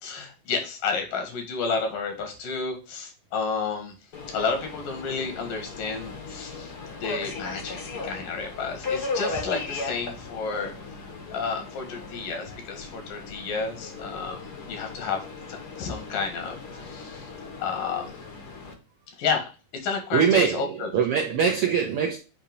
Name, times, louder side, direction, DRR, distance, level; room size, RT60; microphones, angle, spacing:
voice 1, 0.0-3.9 4.3-6.7 7.0-7.8 8.0-10.7 11.0-14.4 14.6-15.2 15.5-16.6 16.8-17.3 17.6-18.1 19.2-20.9, left 5 dB, 85° left, 3.4 m, -31 dB
Subway metro underground, 4.1-18.7, left 3 dB, 65° left, 0.9 m, -37 dB
voice 2, 20.1-22.2, right 7 dB, 75° right, 1.3 m, -23 dB
8.7 x 2.9 x 5.2 m
omnidirectional pair, 3.8 m